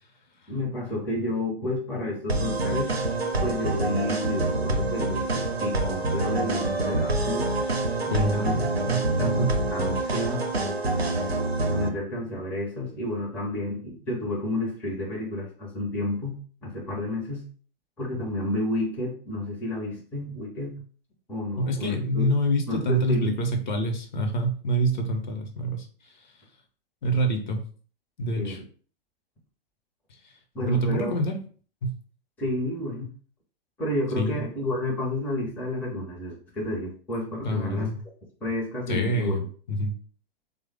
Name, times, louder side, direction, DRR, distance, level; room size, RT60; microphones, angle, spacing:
voice 1, 0.5-2.9 3.4-7.5 8.0-8.6 8.9-10.4 11.6-17.4 18.0-20.8 21.3-22.3 22.7-23.3 28.4-28.6 30.5-31.2 32.4-33.1 33.8-37.9 38.4-39.3, left 1 dB, 5° left, -3 dB, 0.5 m, -31 dB
sound 1, 2.3-11.9, right 2 dB, 90° right, 0.6 m, -26 dB
voice 2, 8.1-9.5 21.6-25.9 27.0-27.6 28.2-28.6 30.7-31.4 31.8-32.0 34.2-34.4 37.4-38.0 38.9-39.4 39.7-39.9, right 1 dB, 50° left, 4 dB, 0.7 m, -26 dB
3.3 x 2.1 x 3.3 m, 0.42 s
figure-of-eight pair, 115°, 30 cm